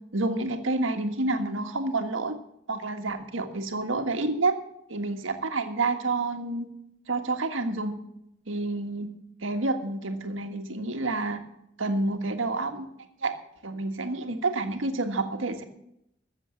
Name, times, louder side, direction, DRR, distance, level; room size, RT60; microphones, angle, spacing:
voice 1, 0.1-2.4 2.7-4.5 4.9-6.7 7.1-7.9 8.5-9.1 9.4-11.4 11.8-12.9 13.2-13.3 13.6-15.6, right 2 dB, 85° right, 6 dB, 1.6 m, -28 dB
14.0 x 7.5 x 7.7 m, 0.78 s
head